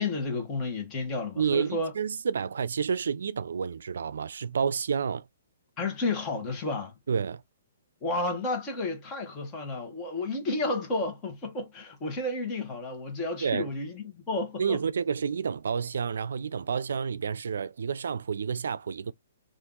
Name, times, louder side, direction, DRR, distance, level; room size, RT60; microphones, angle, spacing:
voice 1, 0.0-1.9 5.8-6.9 8.0-14.8, left 2 dB, 20° left, 1.1 m, -31 dB
voice 2, 1.4-5.2 7.1-7.4 13.4-13.7 14.6-19.1, right 6 dB, 75° right, 0.4 m, -29 dB
2.8 x 2.5 x 3.7 m
hypercardioid pair, 165°, 0 cm